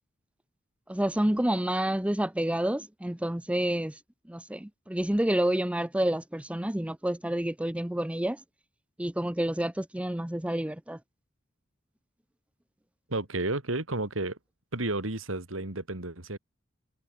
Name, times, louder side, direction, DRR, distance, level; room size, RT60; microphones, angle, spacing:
voice 1, 0.9-4.0 4.3-8.4 9.0-11.0, right 1 dB, 5° right, 0.6 m, -29 dB
voice 2, 13.1-14.4 14.7-16.4, right 2 dB, 85° right, 3.2 m, -32 dB
head